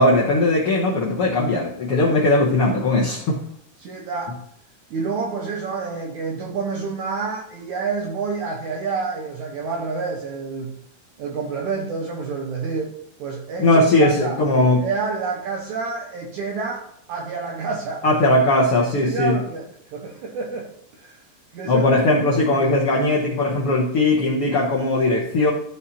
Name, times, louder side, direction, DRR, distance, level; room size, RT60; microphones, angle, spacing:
voice 1, 0.0-3.4 13.6-14.8 18.0-19.3 21.7-25.5, left 2 dB, 60° left, -4 dB, 1.5 m, -19 dB
voice 2, 3.8-4.4 4.9-10.8 11.2-12.9 13.2-18.1 19.0-21.2 21.5-22.1, right 4 dB, 70° right, 1 dB, 2.0 m, -29 dB
13.5 x 5.0 x 4.2 m, 0.69 s
omnidirectional pair, 4.1 m